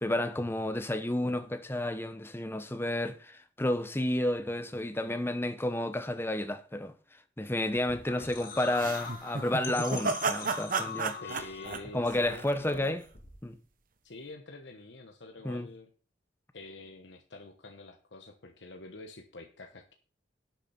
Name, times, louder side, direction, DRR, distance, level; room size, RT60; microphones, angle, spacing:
voice 1, 0.0-6.9 7.4-11.2 11.9-13.0 13.4-13.6 15.4-15.7, left 1 dB, 15° left, 0.9 m, -31 dB
sound 1, 7.9-13.5, left 6 dB, 50° left, 2.3 m, -44 dB
sound 2, 8.8-12.9, right 4 dB, 50° right, 1.1 m, -33 dB
voice 2, 11.2-13.0 14.0-15.9 16.5-19.9, left 2 dB, 70° left, 1.2 m, -47 dB
11.5 x 8.7 x 4.3 m
head